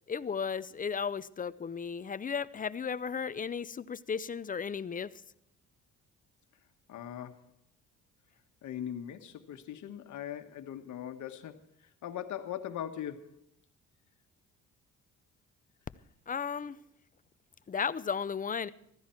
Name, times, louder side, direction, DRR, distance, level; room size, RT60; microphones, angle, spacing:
voice 1, 0.1-5.2 16.3-16.8 17.7-18.7, left 6 dB, 30° left, 0.6 m, -35 dB
voice 2, 6.9-7.4 8.6-11.6 12.0-13.4, left 10 dB, 75° left, 1.4 m, -40 dB
15.0 x 14.5 x 4.5 m
cardioid pair, 90°, 30 cm